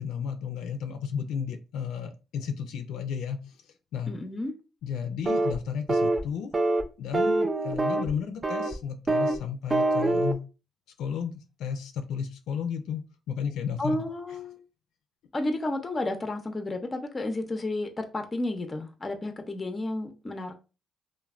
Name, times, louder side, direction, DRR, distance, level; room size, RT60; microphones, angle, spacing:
voice 1, 0.0-3.6 3.9-4.1 4.8-6.5 7.0-10.4 11.0-14.0, left 7 dB, 85° left, 0.4 m, -33 dB
voice 2, 4.1-4.5 13.8-14.6 15.3-20.6, left 2 dB, 25° left, 0.6 m, -32 dB
sound 1, 5.2-5.6 5.9-6.2 6.5-6.8 7.1-8.1 8.4-8.7 9.1-9.4 9.7-10.3, right 2 dB, 25° right, 0.3 m, -25 dB
3.1 x 2.1 x 2.4 m
cardioid pair, 90°, 0 cm